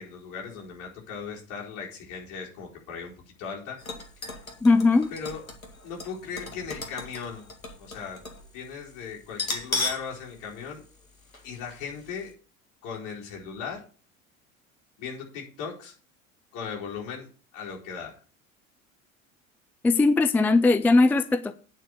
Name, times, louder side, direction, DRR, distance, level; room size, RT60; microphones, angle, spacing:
voice 1, 0.0-3.1 3.4-3.8 5.1-5.4 5.8-7.4 7.8-8.2 8.5-10.8 11.4-12.3 12.8-13.8 15.0-15.9 16.5-17.3 17.5-18.1, left 6 dB, 50° left, -2 dB, 4.2 m, -37 dB
sound 1, 3.8-8.5 8.7-8.8 9.3-10.1 10.5-10.6 11.3-11.5 11.9-12.0, left 3 dB, 85° left, 1.7 m, -35 dB
voice 2, 4.6-5.1 19.8-21.5, left 3 dB, 5° left, 12 dB, 0.4 m, -19 dB
9.1 x 5.7 x 7.9 m, 0.41 s
figure-of-eight pair, 75°, 40 cm